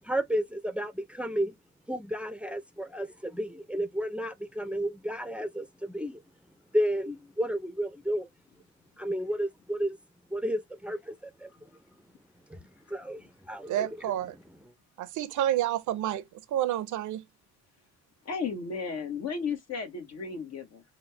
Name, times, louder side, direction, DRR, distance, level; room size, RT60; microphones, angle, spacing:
voice 1, 0.0-1.6 1.9-6.2 6.7-8.3 9.0-10.0 10.3-11.5 12.5-12.6 12.9-14.0, equal, 5° right, 0.6 m, -32 dB
voice 2, 13.7-14.3 15.0-16.2 16.5-17.2, right 12 dB, 80° right, 0.7 m, -29 dB
voice 3, 18.2-20.8, left 5 dB, 55° left, 1.4 m, -34 dB
3.8 x 2.3 x 3.4 m
cardioid pair, 90°, 30 cm